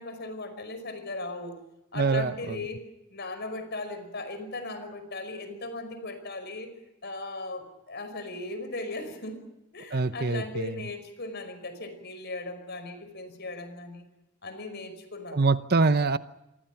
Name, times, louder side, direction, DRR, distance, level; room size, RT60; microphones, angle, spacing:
voice 1, 0.0-1.6 1.9-2.8 3.1-6.7 7.0-9.4 9.7-14.0 14.4-15.4, left 2 dB, 50° left, 10 dB, 5.3 m, -37 dB
voice 2, 2.0-2.6 9.9-10.7 15.3-16.2, right 3 dB, 45° right, 12 dB, 0.8 m, -24 dB
27.5 x 24.5 x 5.9 m, 0.91 s
head